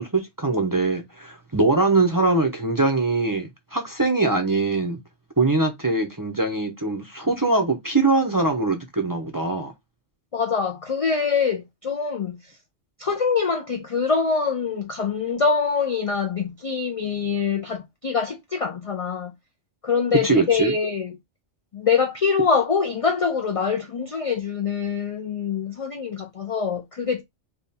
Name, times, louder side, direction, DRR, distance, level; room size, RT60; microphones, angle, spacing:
voice 1, 0.0-5.0 5.4-9.7 20.2-20.7, right 3 dB, 25° right, 0.5 m, -22 dB
voice 2, 10.3-12.4 13.0-19.3 19.8-21.2 21.7-27.2, left 5 dB, 60° left, 0.3 m, -24 dB
3.4 x 2.3 x 4.1 m
omnidirectional pair, 1.2 m